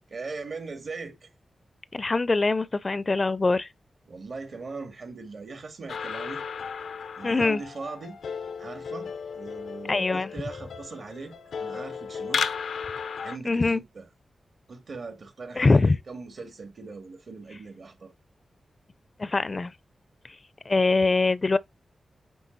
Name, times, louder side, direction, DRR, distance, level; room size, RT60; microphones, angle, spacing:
voice 1, 0.1-1.3 4.1-6.4 7.2-8.2 8.6-12.4 13.2-14.0 14.7-18.1, right 4 dB, 65° right, 2.3 m, -40 dB
voice 2, 1.9-3.7 7.2-7.6 9.9-10.3 13.5-13.8 15.6-16.0 19.2-19.7 20.7-21.6, left 3 dB, 40° left, 0.5 m, -23 dB
sound 1, 5.9-13.4, left 6 dB, 85° left, 0.7 m, -34 dB
9.3 x 3.5 x 4.1 m
cardioid pair, 55°, 0 cm